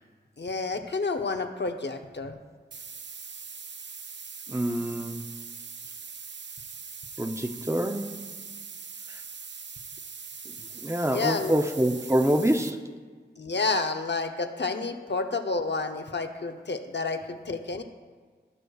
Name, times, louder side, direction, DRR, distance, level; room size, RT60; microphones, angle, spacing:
voice 1, 0.4-2.4 11.0-11.6 13.4-17.8, left 3 dB, 70° left, 6 dB, 0.7 m, -30 dB
sound 1, 2.7-12.7, right 5 dB, 80° right, 0.5 m, -42 dB
voice 2, 4.5-5.2 7.2-8.2 9.1-9.2 10.8-12.8, right 1 dB, 15° right, 6 dB, 0.6 m, -26 dB
16.5 x 6.3 x 2.4 m, 1.5 s
wide cardioid pair, 60°, 18 cm